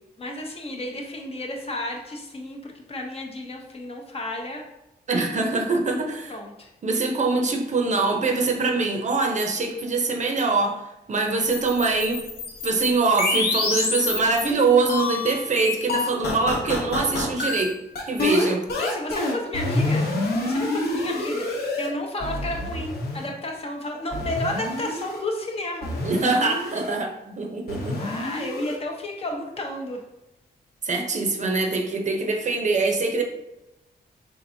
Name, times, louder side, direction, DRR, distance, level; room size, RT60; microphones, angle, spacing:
voice 1, 0.2-4.7 6.3-6.7 18.8-20.1 20.4-25.9 28.0-30.0, left 1 dB, 35° left, 1 dB, 0.7 m, -32 dB
voice 2, 5.1-6.4 6.8-10.7 11.1-12.2 12.6-17.8 18.1-18.7 26.0-28.0 30.8-33.2, right 3 dB, 45° right, 2 dB, 0.6 m, -23 dB
sound 1, 11.4-14.5 14.9-21.9 22.2-23.3 24.1-25.2 25.8-26.9 27.7-28.8, left 2 dB, 75° left, 0.9 m, -27 dB
4.5 x 3.6 x 2.6 m, 0.96 s
wide cardioid pair, 175°, 17 cm